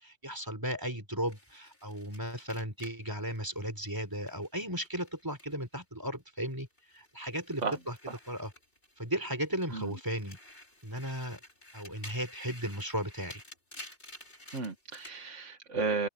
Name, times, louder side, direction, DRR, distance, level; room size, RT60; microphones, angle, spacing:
voice 1, 0.0-6.7 6.9-7.9 8.3-8.5 9.0-10.4 10.8-11.4 11.7-13.4, equal, 15° right, 3.9 m, -35 dB
sound 1, 1.3-5.8 6.1-9.1 9.5-15.2, left 1 dB, 45° left, 5.8 m, -52 dB
voice 2, 14.5-16.1, right 4 dB, 80° right, 2.2 m, -33 dB
open air
omnidirectional pair, 1.2 m